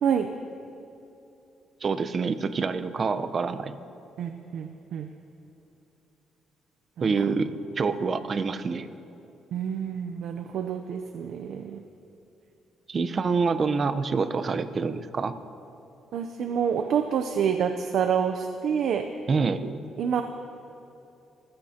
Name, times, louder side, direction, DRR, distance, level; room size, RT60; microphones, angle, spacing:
voice 1, 1.8-3.8 7.0-8.9 12.9-15.3 19.3-19.6, right 4 dB, 45° right, 11 dB, 0.8 m, -26 dB
voice 2, 4.2-5.1 7.0-7.1 9.5-11.8 16.1-19.1 19.6-19.7 20.0-20.2, right 7 dB, 75° right, 7 dB, 0.7 m, -27 dB
26.5 x 15.5 x 2.9 m, 2.9 s
cardioid pair, 90°, 0 cm